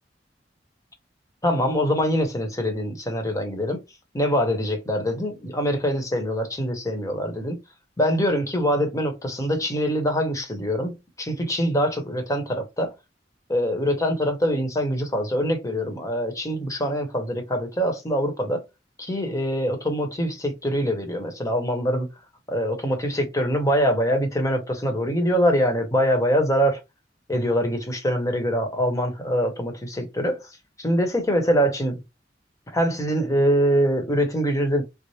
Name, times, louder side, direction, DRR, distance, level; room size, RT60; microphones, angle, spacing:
voice 1, 1.4-3.8 4.1-7.6 8.0-12.9 13.5-18.6 19.0-22.1 22.5-26.8 27.3-30.5 30.8-32.0 32.7-34.8, equal, 20° left, 1.0 m, -24 dB
3.3 x 2.0 x 4.1 m
head